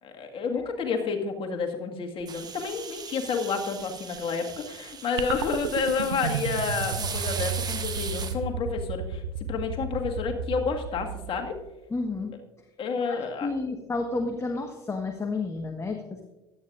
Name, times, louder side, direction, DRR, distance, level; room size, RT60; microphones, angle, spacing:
voice 1, 0.0-11.5 12.8-13.5, left 5 dB, 40° left, 3 dB, 1.9 m, -30 dB
sound 1, 2.3-8.3, right 6 dB, 30° right, 1.4 m, -38 dB
sound 2, 5.2-11.7, right 6 dB, 75° right, 0.7 m, -33 dB
voice 2, 11.9-12.3 13.1-16.2, left 3 dB, 20° left, 3 dB, 1.3 m, -31 dB
16.0 x 11.5 x 2.5 m, 1.0 s
figure-of-eight pair, 65°, 14 cm